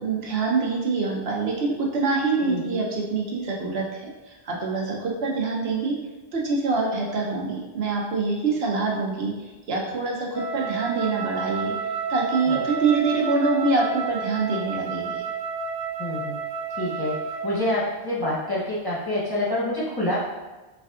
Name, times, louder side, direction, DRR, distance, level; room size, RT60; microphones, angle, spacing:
voice 1, 0.0-4.1 4.4-6.0 6.3-9.3 9.7-11.7 12.1-15.2, right 3 dB, 70° right, -1 dB, 0.9 m, -25 dB
voice 2, 2.4-2.9 12.5-12.6 16.0-16.4 16.8-17.1 17.4-20.2, left 1 dB, 25° left, -8 dB, 0.9 m, -27 dB
Wind instrument woodwind instrument, 10.3-18.0, right 6 dB, 20° right, 0.4 m, -31 dB
5.0 x 2.5 x 2.4 m, 1.2 s
omnidirectional pair, 1.1 m